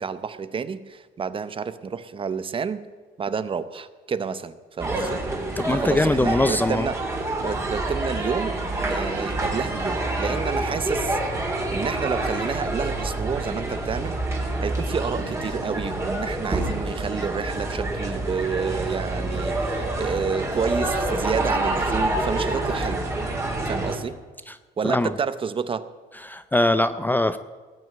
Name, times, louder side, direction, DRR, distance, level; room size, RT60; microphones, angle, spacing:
voice 1, 0.0-2.8 3.2-5.2 5.7-7.0 7.4-14.2 14.6-23.0 23.6-24.2 24.8-25.9, right 6 dB, 30° right, 14 dB, 0.8 m, -29 dB
sound 1, 4.8-24.0, right 2 dB, 15° right, 2.9 m, -27 dB
voice 2, 5.6-6.9 24.5-24.6 24.8-25.1 26.2-27.4, left 2 dB, 10° left, 12 dB, 0.5 m, -22 dB
18.5 x 6.3 x 9.1 m, 1.4 s
cardioid pair, 110°, 17 cm